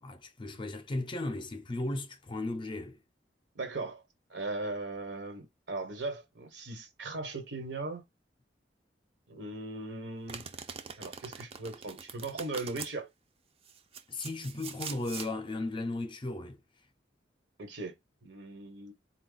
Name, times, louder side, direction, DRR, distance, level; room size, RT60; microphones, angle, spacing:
voice 1, 0.0-3.0 14.1-16.6, left 2 dB, 30° left, 0.5 m, -36 dB
voice 2, 3.5-4.0 4.3-8.0 9.3-10.5 11.0-13.1 17.6-17.9 18.2-18.9, right 2 dB, 80° right, 1.2 m, -38 dB
Domestic sounds home sounds, 10.3-12.9 13.7-15.3, right 6 dB, 35° right, 0.5 m, -43 dB
4.1 x 2.3 x 3.9 m
head